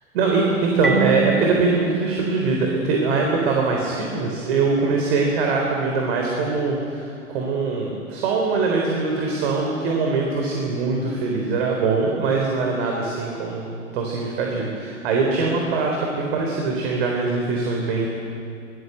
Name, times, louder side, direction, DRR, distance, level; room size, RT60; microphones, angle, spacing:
voice 1, 0.1-18.1, right 4 dB, 45° right, 0 dB, 3.9 m, -22 dB
Marimba xylophone, 0.8-3.5, right 5 dB, ahead, 3.1 m, -28 dB
25.0 x 18.5 x 7.9 m, 2.6 s
figure-of-eight pair, 105°, 41 cm